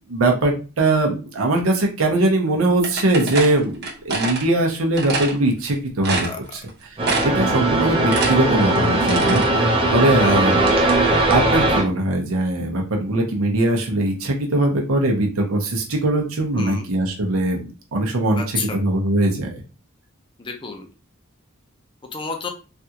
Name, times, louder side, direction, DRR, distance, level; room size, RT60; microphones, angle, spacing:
voice 1, 0.1-6.6 7.2-10.7 11.3-19.6, right 2 dB, 75° right, 1 dB, 0.7 m, -21 dB
sound 1, 2.8-4.4 5.0-5.3 5.7-5.8 6.0-6.7 7.0-7.5 7.8-9.5, right 3 dB, 50° right, 1.0 m, -25 dB
sound 2, 7.0-11.8, right 2 dB, 25° right, 0.7 m, -19 dB
voice 2, 10.2-10.5 16.6-16.9 18.4-18.8 20.4-20.9 22.0-22.5, left 4 dB, 25° left, 4 dB, 0.5 m, -30 dB
3.4 x 2.4 x 2.8 m, 0.33 s
head